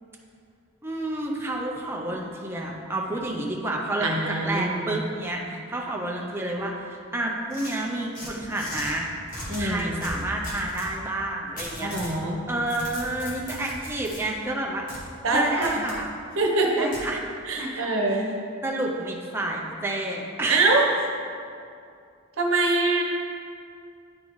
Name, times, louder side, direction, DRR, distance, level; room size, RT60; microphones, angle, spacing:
voice 1, 0.8-9.1 9.6-12.1 12.5-14.9 15.3-16.1 16.8-17.2 17.6-18.2 18.6-20.6, right 1 dB, 10° right, -2 dB, 0.5 m, -30 dB
voice 2, 4.0-5.0 9.5-10.0 11.8-12.4 15.2-15.9 16.4-16.9 17.4-18.3 20.5-20.8 22.4-23.0, right 2 dB, 80° right, 0 dB, 0.9 m, -24 dB
sound 1, 7.5-8.9 9.3-10.9 11.6-12.2 12.5-14.2 14.9-15.0 15.6-16.0 16.9-17.1, left 1 dB, 45° left, 1.5 m, -37 dB
9.4 x 3.9 x 3.1 m, 2.4 s
head